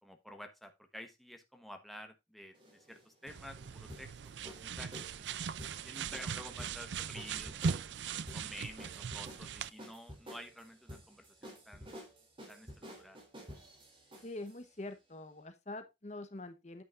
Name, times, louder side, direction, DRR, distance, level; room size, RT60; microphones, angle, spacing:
voice 1, 0.0-4.1 4.4-5.3 5.8-8.0 8.3-11.9 12.5-13.2, equal, ahead, 1.0 m, -51 dB
sound 1, 2.5-14.6, equal, 30° right, 3.3 m, -51 dB
sound 2, 3.3-9.7, right 6 dB, 75° right, 0.5 m, -39 dB
voice 2, 14.2-16.8, left 2 dB, 40° left, 1.0 m, -45 dB
9.3 x 8.5 x 2.4 m
head